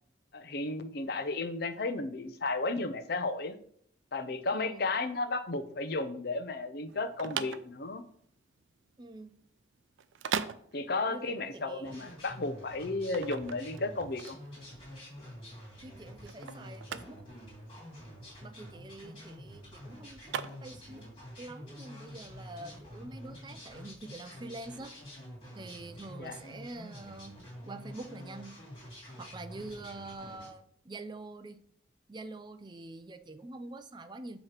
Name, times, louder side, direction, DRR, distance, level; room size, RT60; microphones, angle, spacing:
voice 1, 0.3-3.6 4.1-8.0 10.7-14.4 26.2-26.4, left 3 dB, 55° left, 10 dB, 0.6 m, -33 dB
voice 2, 4.5-4.9 9.0-9.4 11.1-12.1 15.8-17.3 18.4-21.1 21.4-25.0 25.5-27.4 27.6-28.6 29.2-31.6 32.1-34.4, right 2 dB, 25° right, 10 dB, 0.4 m, -46 dB
sound 1, 6.9-21.1, right 7 dB, 85° right, 0.4 m, -40 dB
sound 2, 11.8-30.5, equal, 30° left, 2.9 m, -48 dB
7.8 x 3.1 x 5.8 m, 0.64 s
head